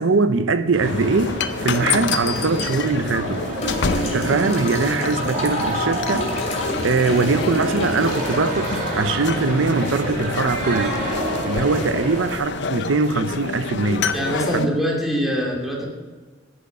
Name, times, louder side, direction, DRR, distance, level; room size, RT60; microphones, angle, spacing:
voice 1, 0.0-3.4 4.0-11.0 11.4-14.1 14.5-14.7, right 3 dB, 80° right, 0.7 m, -22 dB
sound 1, 0.7-12.4, right 1 dB, 45° right, 4.3 m, -29 dB
sound 2, 0.8-14.7, left 5 dB, 60° left, 0.6 m, -28 dB
sound 3, 1.7-2.6 3.6-10.6 12.0-12.1, left 1 dB, 35° left, 2.5 m, -30 dB
voice 2, 14.1-15.9, equal, ahead, 2.5 m, -23 dB
11.0 x 6.4 x 8.7 m
head